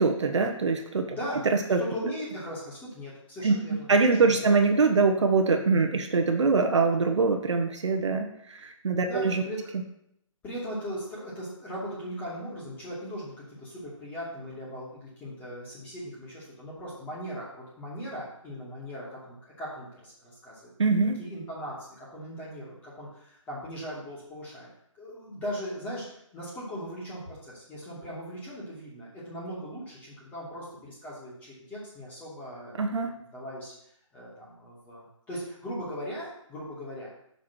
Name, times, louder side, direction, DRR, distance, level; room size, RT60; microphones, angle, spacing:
voice 1, 0.0-1.2 1.5-1.8 3.4-3.5 3.9-9.4 20.8-21.2 32.8-33.1, right 4 dB, 60° right, 4 dB, 1.2 m, -23 dB
voice 2, 1.1-1.4 1.8-3.9 4.2-4.5 9.0-9.6 10.4-20.6 21.2-24.7 24.9-26.1 26.3-33.7 34.1-37.1, equal, 10° left, -7 dB, 2.6 m, -39 dB
6.1 x 6.0 x 6.3 m, 0.75 s
figure-of-eight pair, 155°, 17 cm